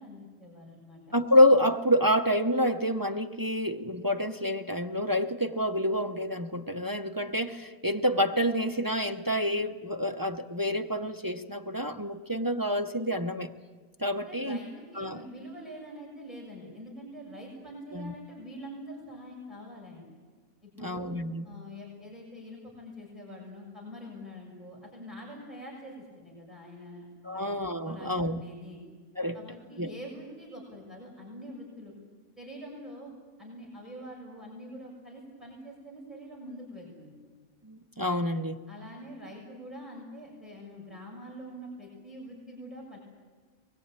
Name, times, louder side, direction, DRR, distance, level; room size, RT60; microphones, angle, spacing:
voice 1, 0.0-1.1 14.1-20.0 20.6-21.1 21.4-27.5 27.8-28.8 29.3-31.9 32.4-33.1 33.4-37.1 38.7-43.0, equal, ahead, -4 dB, 7.0 m, -45 dB
voice 2, 1.1-13.5 14.0-14.6 15.0-15.2 17.9-18.1 20.8-21.5 27.2-28.4 29.2-29.4 29.8-29.9 37.6-38.6, equal, 20° right, 4 dB, 0.6 m, -27 dB
23.5 x 20.5 x 8.9 m, 1.4 s
omnidirectional pair, 1.5 m